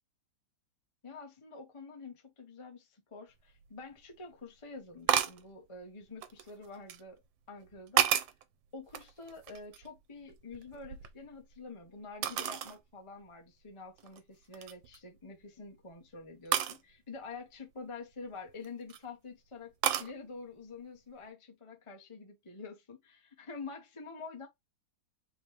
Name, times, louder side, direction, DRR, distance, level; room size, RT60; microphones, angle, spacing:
voice 1, 1.0-7.2 7.5-8.1 8.7-24.5, left 4 dB, 25° left, 0.6 m, -47 dB
sound 1, 3.6-3.7 5.1-5.4 6.2-7.0 7.6-8.4 8.9-10.0 10.3-11.6 12.2-12.8 13.3-13.4 14.0-14.2 14.5-15.0 16.5-16.8 18.5-19.0 19.8-20.1, right 10 dB, 90° right, 1.4 m, -31 dB
4.1 x 3.1 x 3.2 m
omnidirectional pair, 2.0 m